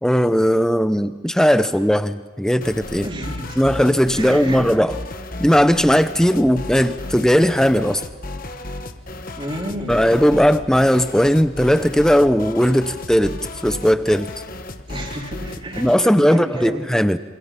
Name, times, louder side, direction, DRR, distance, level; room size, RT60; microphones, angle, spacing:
voice 1, 0.0-3.1 3.6-5.0 5.4-8.0 9.9-14.3 15.8-17.2, equal, 5° left, 11 dB, 0.7 m, -17 dB
sound 1, 2.6-16.0, left 2 dB, 40° left, 1.3 m, -34 dB
voice 2, 3.0-3.6 4.2-4.6 6.4-6.5 9.4-10.1 14.9-16.8, right 1 dB, 25° right, 0 dB, 3.3 m, -31 dB
27.5 x 26.0 x 5.7 m, 1.3 s
head